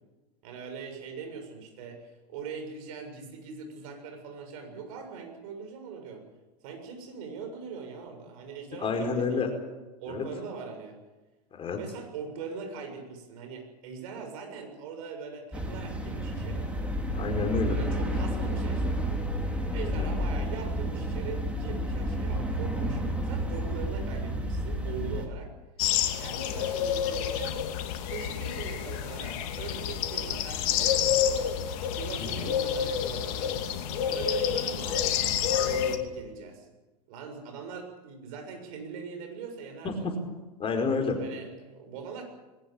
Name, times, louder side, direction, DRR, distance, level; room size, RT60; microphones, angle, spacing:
voice 1, 0.4-6.2 6.6-9.4 10.0-11.0 11.7-16.7 17.7-19.2 19.7-25.5 26.2-27.6 28.1-31.5 31.8-33.6 34.0-36.7 37.1-40.1 41.2-42.2, right 6 dB, 55° right, 5 dB, 7.0 m, -41 dB
voice 2, 8.8-9.5 10.1-10.2 11.5-11.8 17.1-17.7 19.8-20.1 32.3-32.5 39.8-40.1 40.6-41.2, left 4 dB, 25° left, 4 dB, 4.9 m, -29 dB
sound 1, 15.5-25.3, equal, 5° right, 4.3 m, -31 dB
sound 2, 25.8-36.0, left 9 dB, 55° left, 2.7 m, -29 dB
21.5 x 19.0 x 8.9 m, 1.1 s
figure-of-eight pair, 90°, 21 cm